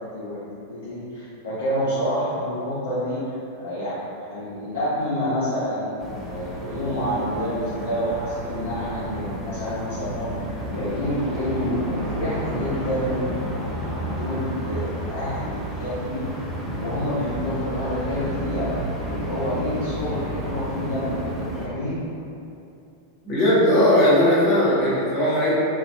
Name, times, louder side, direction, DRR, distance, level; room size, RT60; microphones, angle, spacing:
voice 1, 0.0-4.0 4.3-16.2 16.6-18.7 19.0-22.0, equal, 55° left, -13 dB, 0.7 m, -28 dB
sound 1, 6.0-21.7, equal, ahead, 0.4 m, -31 dB
voice 2, 23.2-25.6, left 1 dB, 35° left, -10 dB, 1.0 m, -18 dB
2.6 x 2.2 x 2.3 m, 2.7 s
figure-of-eight pair, 90°, 0 cm